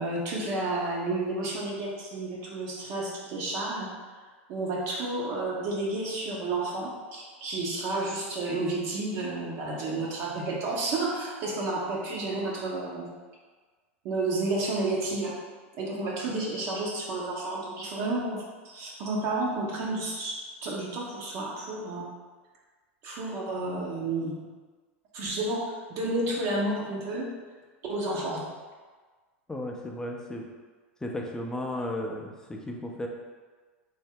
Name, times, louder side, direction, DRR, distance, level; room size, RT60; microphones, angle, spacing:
voice 1, 0.0-3.9 4.5-13.1 14.0-15.3 15.8-20.3 20.6-22.1 23.0-24.4 25.1-27.3 27.9-28.4, right 2 dB, 50° right, -4 dB, 0.7 m, -31 dB
voice 2, 29.5-30.4 31.0-33.1, left 1 dB, 10° left, 1 dB, 0.5 m, -34 dB
3.4 x 2.1 x 3.5 m, 1.4 s
hypercardioid pair, 95°, 7 cm